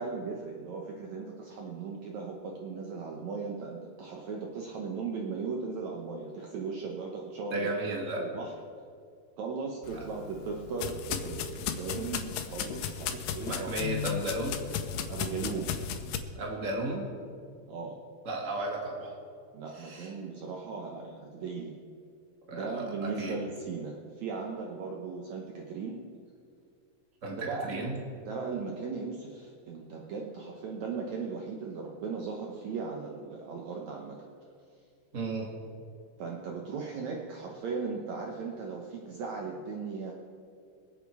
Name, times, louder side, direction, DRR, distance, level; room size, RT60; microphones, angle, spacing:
voice 1, 0.0-7.7 8.2-8.5 9.4-13.8 15.1-15.9 17.7-18.0 19.5-21.7 22.5-26.0 27.5-27.9 28.3-34.2 36.2-40.1, right 4 dB, 65° right, 0 dB, 2.1 m, -37 dB
voice 2, 7.5-8.2 13.5-14.6 16.4-17.1 18.2-19.1 19.8-20.1 22.5-22.8 23.2-23.3 27.2-27.9 35.1-35.5, right 2 dB, 25° right, -1 dB, 2.1 m, -34 dB
sound 1, 9.8-16.2, left 8 dB, 80° left, 2.4 m, -35 dB
24.5 x 8.1 x 4.8 m, 2.4 s
omnidirectional pair, 3.9 m